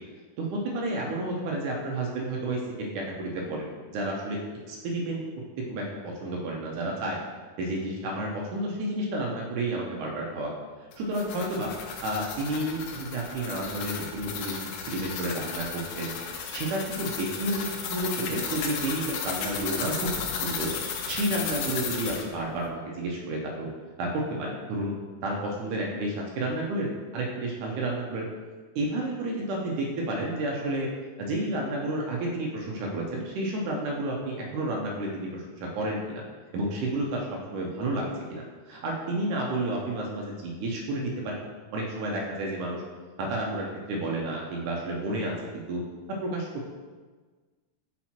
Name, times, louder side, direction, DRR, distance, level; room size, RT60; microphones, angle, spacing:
voice 1, 0.4-4.4 4.7-5.3 5.7-7.2 7.6-10.5 11.0-11.7 12.0-16.1 16.5-19.9 20.2-20.7 21.1-23.7 24.0-24.9 25.2-28.3 28.8-30.9 31.2-36.2 36.5-41.4 41.7-42.8 43.2-45.8 46.2-46.5, right 1 dB, 75° right, -1 dB, 1.9 m, -31 dB
sound 1, 10.9-22.3, left 6 dB, 85° left, 2.6 m, -34 dB
5.8 x 5.1 x 4.3 m, 1.4 s
omnidirectional pair, 4.4 m